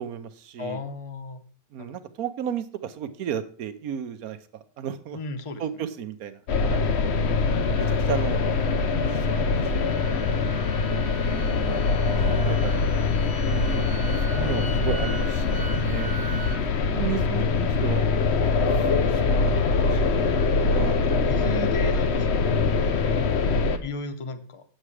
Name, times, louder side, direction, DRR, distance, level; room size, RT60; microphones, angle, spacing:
voice 1, 0.0-0.8 1.7-5.2 5.6-6.8 7.6-8.4 8.9-9.9 10.4-10.5 10.8-12.8 13.4-13.9 14.4-16.1 16.8-18.1 18.7-21.0 21.8-22.0, right 9 dB, 70° right, 11 dB, 1.2 m, -34 dB
voice 2, 0.6-1.4 1.8-2.0 5.1-5.6 14.3-14.9 17.4-17.5 20.6-22.6 23.8-24.6, left 2 dB, 35° left, 10 dB, 0.5 m, -35 dB
sound 1, 6.5-23.8, left 4 dB, 50° left, 0.9 m, -23 dB
sound 2, 7.4-16.6, right 4 dB, 50° right, 1.1 m, -42 dB
8.5 x 7.7 x 4.8 m, 0.43 s
omnidirectional pair, 1.7 m